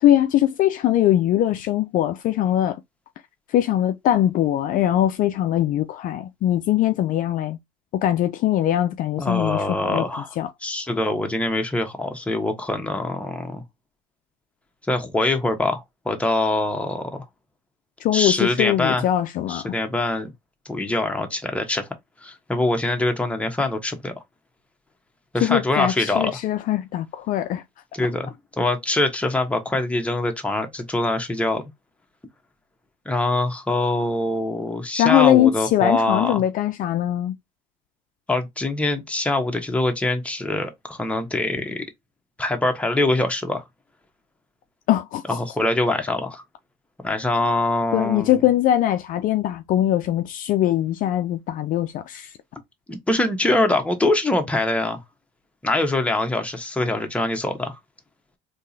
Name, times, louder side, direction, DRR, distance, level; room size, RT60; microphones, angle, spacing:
voice 1, 0.0-2.8 3.5-7.6 7.9-10.0 10.4-10.5 18.0-19.7 25.4-27.6 35.0-37.4 44.9-45.4 47.9-52.3, left 12 dB, 55° left, 0.4 m, -21 dB
voice 2, 9.2-10.3 10.6-13.6 14.9-17.2 18.1-19.0 19.5-20.3 20.7-21.9 22.2-24.1 25.3-26.3 27.9-31.6 33.0-36.4 38.3-41.9 42.4-43.6 45.3-46.4 47.0-48.4 52.9-55.0 55.6-57.8, left 2 dB, 5° left, 1.0 m, -24 dB
3.6 x 2.9 x 2.7 m
supercardioid pair, 80°, 17 cm